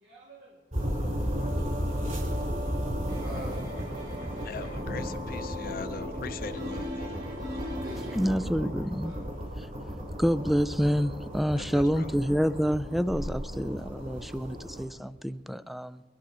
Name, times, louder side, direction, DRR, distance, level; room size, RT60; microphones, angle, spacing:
voice 1, 0.0-0.5 1.2-1.6 3.2-3.6 7.8-8.5 9.0-9.3, equal, 80° right, -4 dB, 2.6 m, -43 dB
sound 1, 0.7-14.9, equal, 45° right, 3.9 m, -35 dB
sound 2, 1.4-8.2, left 1 dB, 60° right, 6.5 m, -39 dB
voice 2, 4.4-7.2 11.5-12.1, left 4 dB, 55° left, 10 dB, 0.7 m, -41 dB
voice 3, 8.1-9.2 9.6-9.7 10.2-16.0, equal, ahead, 14 dB, 0.3 m, -28 dB
22.0 x 12.0 x 4.3 m, 1.3 s
head